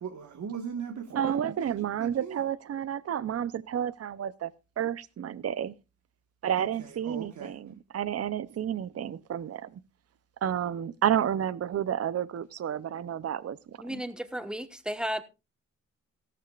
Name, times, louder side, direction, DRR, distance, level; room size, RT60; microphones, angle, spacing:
voice 1, 0.0-1.4 2.2-2.4 7.0-7.5, right 7 dB, 70° right, 1.6 m, -37 dB
voice 2, 1.1-5.7 6.4-9.8 10.4-14.0, right 9 dB, 55° right, 0.7 m, -31 dB
voice 3, 13.8-15.2, equal, 5° right, 1.2 m, -34 dB
16.5 x 13.5 x 2.4 m
wide cardioid pair, 110°, 30 cm